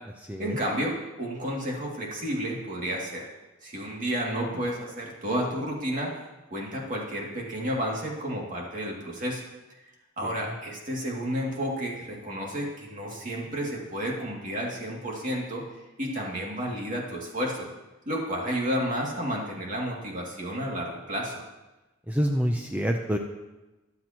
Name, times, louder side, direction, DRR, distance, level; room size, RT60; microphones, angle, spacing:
voice 1, 0.4-3.3 3.6-6.2 6.5-9.4 10.2-15.6 16.0-17.7 18.1-21.4, equal, 40° right, -2 dB, 2.5 m, -31 dB
voice 2, 22.1-23.2, equal, 10° right, 3 dB, 0.6 m, -27 dB
21.5 x 7.8 x 3.0 m, 1.1 s
head